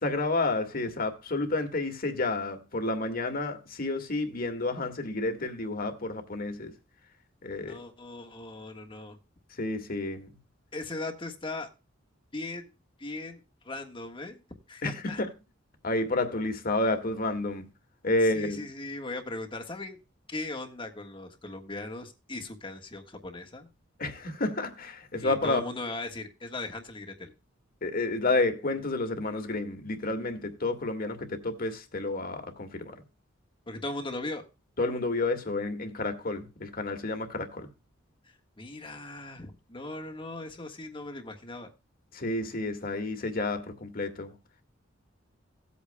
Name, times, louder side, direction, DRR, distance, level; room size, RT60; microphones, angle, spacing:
voice 1, 0.0-6.7 7.4-7.8 9.5-10.4 14.8-15.3 15.8-17.7 18.0-18.7 24.0-25.6 27.8-33.0 34.8-37.7 42.1-44.3, left 2 dB, 50° left, 1.8 m, -30 dB
voice 2, 7.6-9.2 10.7-11.7 12.3-12.7 13.0-13.4 13.6-14.4 14.7-15.2 18.3-20.0 20.3-23.7 25.2-27.3 33.7-34.4 38.6-41.7, left 2 dB, 25° left, 1.4 m, -38 dB
17.0 x 8.4 x 2.2 m
head